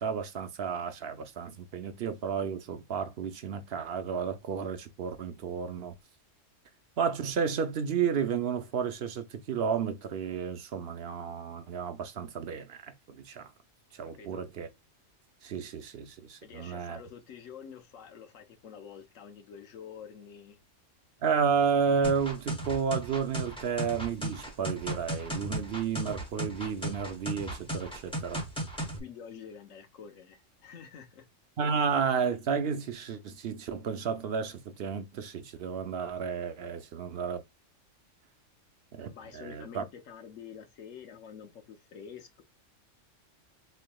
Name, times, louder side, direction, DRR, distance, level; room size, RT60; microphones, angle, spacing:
voice 1, 0.0-6.0 7.0-13.5 13.9-14.7 15.4-17.0 21.2-28.4 31.6-37.4 38.9-39.8, right 6 dB, 60° right, 0.8 m, -32 dB
voice 2, 14.0-14.4 16.4-20.6 29.0-31.3 36.6-36.7 39.1-42.4, left 7 dB, 90° left, 1.1 m, -48 dB
sound 1, 22.0-29.0, right 1 dB, 5° left, 0.7 m, -36 dB
4.2 x 3.3 x 2.2 m
omnidirectional pair, 1.3 m